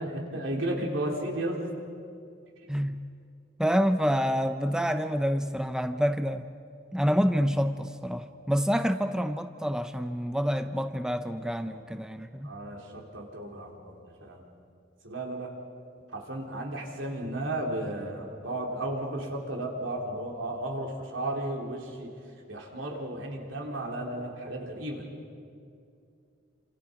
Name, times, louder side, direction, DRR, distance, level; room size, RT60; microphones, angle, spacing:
voice 1, 0.0-1.6 12.4-13.9 14.2-14.4 15.0-15.5 16.1-22.1 22.5-25.1, right 1 dB, 75° right, 0 dB, 3.8 m, -34 dB
voice 2, 3.6-6.5 6.9-12.5, equal, 5° right, 9 dB, 0.6 m, -27 dB
28.5 x 26.5 x 5.3 m, 2.5 s
head